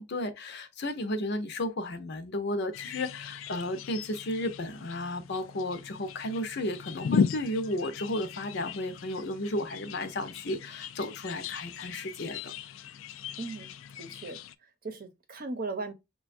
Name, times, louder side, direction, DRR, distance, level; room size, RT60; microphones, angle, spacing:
voice 1, 0.0-12.5, left 1 dB, 60° left, 0.7 m, -33 dB
sound 1, 2.7-14.6, left 6 dB, 85° left, 0.3 m, -37 dB
voice 2, 13.4-15.9, right 3 dB, 50° right, 0.7 m, -38 dB
6.0 x 2.3 x 2.5 m
head